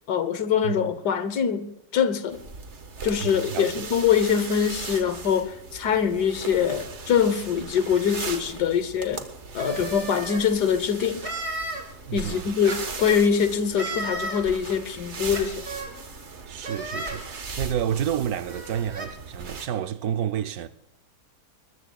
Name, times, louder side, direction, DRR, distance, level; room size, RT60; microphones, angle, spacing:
voice 1, 0.1-2.4 3.0-9.2 9.5-11.3 12.1-15.7, left 7 dB, 80° left, 1.6 m, -24 dB
sound 1, 2.3-19.7, right 4 dB, 45° right, 1.6 m, -39 dB
voice 2, 3.2-3.9 12.1-12.6 16.5-20.7, right 9 dB, 70° right, 1.1 m, -30 dB
sound 2, 9.5-10.4 11.2-11.8 12.6-13.2 13.7-14.4 15.3-15.9 16.6-17.2 18.0-18.1 18.5-19.1, right 2 dB, 25° right, 2.9 m, -34 dB
21.0 x 20.5 x 2.3 m
omnidirectional pair, 1.7 m